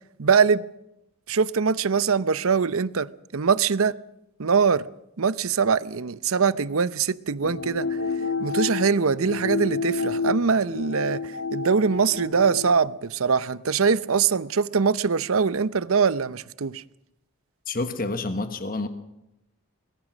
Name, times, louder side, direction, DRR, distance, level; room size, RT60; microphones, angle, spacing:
voice 1, 0.2-0.6 1.3-3.9 4.4-4.8 5.2-7.9 8.4-16.8, right 5 dB, 70° right, 0.7 m, -23 dB
sound 1, 7.4-12.7, left 4 dB, 55° left, 1.2 m, -30 dB
voice 2, 17.7-18.9, left 2 dB, 40° left, 1.3 m, -28 dB
23.0 x 19.5 x 6.2 m
head